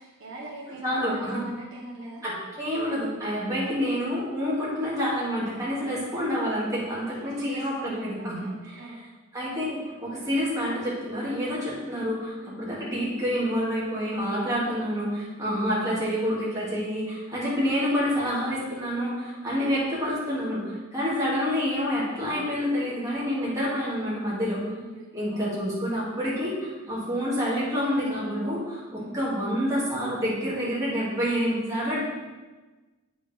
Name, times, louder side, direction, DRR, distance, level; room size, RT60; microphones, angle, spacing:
voice 1, 0.0-2.2 7.0-9.0 12.4-12.5 15.4-15.5 19.3-19.5 24.7-25.5 29.0-29.2, right 2 dB, 65° right, -4 dB, 1.3 m, -43 dB
voice 2, 0.8-1.4 2.2-8.4 8.7-8.8 9.3-24.7 25.1-32.0, equal, 15° right, -8 dB, 2.6 m, -28 dB
8.5 x 6.7 x 3.6 m, 1.2 s
head